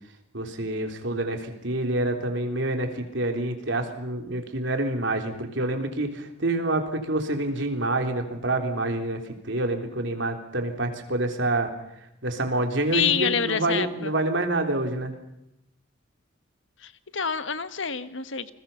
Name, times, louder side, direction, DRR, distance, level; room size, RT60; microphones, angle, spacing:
voice 1, 0.3-11.7 12.2-15.1, right 2 dB, 65° right, 5 dB, 3.7 m, -27 dB
voice 2, 12.9-14.1 16.8-18.5, left 7 dB, 65° left, 12 dB, 1.3 m, -27 dB
29.0 x 22.0 x 5.7 m, 0.84 s
head